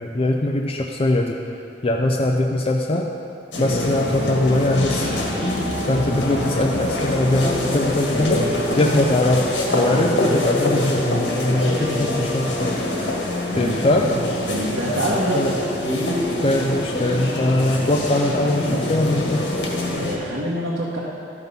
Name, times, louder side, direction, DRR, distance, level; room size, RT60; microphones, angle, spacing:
voice 1, 0.0-1.4 1.8-3.1 3.6-5.1 5.9-12.7 13.6-14.1 15.3-15.5 16.4-19.5, left 1 dB, 30° left, 0 dB, 0.5 m, -21 dB
sound 1, 3.5-20.2, left 1 dB, 75° left, 1.7 m, -24 dB
voice 2, 14.5-15.5 19.9-21.0, right 1 dB, 80° right, -6 dB, 1.3 m, -26 dB
13.0 x 6.0 x 5.4 m, 2.6 s
head